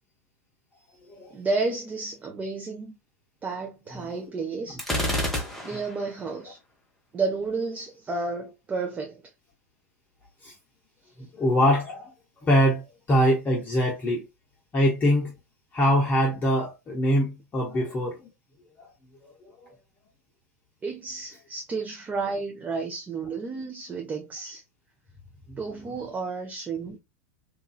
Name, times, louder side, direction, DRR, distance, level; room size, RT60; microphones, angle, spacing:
voice 1, 1.3-2.9 3.4-5.1 5.6-6.6 7.1-9.3 20.8-24.6 25.6-27.0, right 4 dB, 20° right, 0.6 m, -31 dB
Gunshot gunfire, 4.8-6.0, equal, ahead, 1.0 m, -28 dB
voice 2, 11.3-12.1 12.4-14.2 14.7-15.3 15.7-18.2 19.6-19.7 25.5-25.6, equal, 20° left, 0.8 m, -23 dB
3.0 x 2.6 x 2.3 m
figure-of-eight pair, 90°, 8 cm